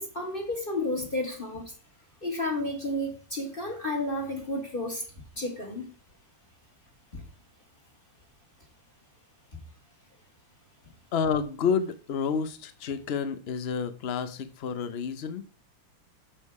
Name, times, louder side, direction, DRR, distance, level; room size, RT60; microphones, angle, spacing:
voice 1, 0.0-1.7 2.2-5.0 5.4-5.9 7.1-7.2, left 1 dB, 30° left, 1.9 m, -32 dB
voice 2, 11.1-15.4, left 6 dB, 90° left, 0.5 m, -29 dB
7.5 x 6.6 x 4.7 m
omnidirectional pair, 2.0 m